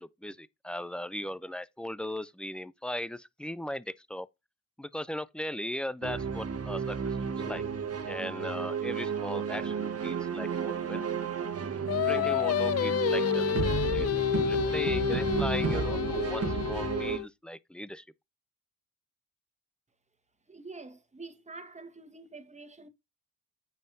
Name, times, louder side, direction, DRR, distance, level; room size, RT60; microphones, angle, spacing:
voice 1, 0.0-4.3 4.8-7.6 8.1-11.0 12.0-18.0, left 1 dB, 5° left, 0.5 m, -38 dB
sound 1, 6.0-17.2, right 6 dB, 50° right, 1.4 m, -32 dB
Singing, 11.9-17.3, left 13 dB, 50° left, 0.5 m, -29 dB
voice 2, 20.5-22.9, right 3 dB, 20° right, 1.6 m, -46 dB
9.1 x 5.5 x 2.7 m
cardioid pair, 60°, 32 cm